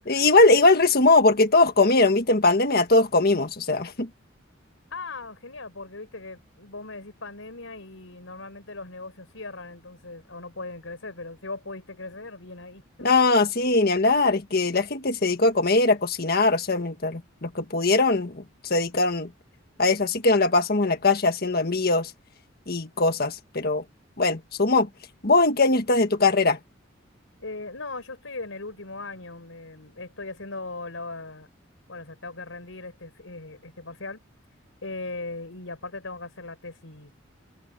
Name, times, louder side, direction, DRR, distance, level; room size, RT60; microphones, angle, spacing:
voice 1, 0.1-4.1 13.0-19.3 19.8-22.1 22.7-23.8 24.2-24.9 25.2-26.6, left 3 dB, 50° left, 1.5 m, -21 dB
voice 2, 4.9-13.1 27.4-31.5 31.9-34.2 34.8-37.1, left 3 dB, 85° left, 4.7 m, -39 dB
head